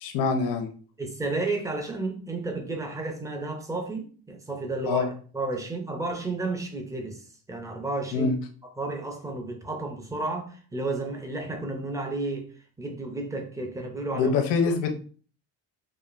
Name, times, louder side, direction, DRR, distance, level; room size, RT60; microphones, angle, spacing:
voice 1, 0.0-0.7 4.9-5.1 8.1-8.3 14.1-14.9, left 5 dB, 75° left, 0.8 m, -24 dB
voice 2, 1.0-5.1 5.3-7.2 7.5-8.3 8.8-12.5 12.8-14.3, right 2 dB, 10° right, 0.4 m, -32 dB
4.9 x 2.5 x 2.4 m
cardioid pair, 165°, 42 cm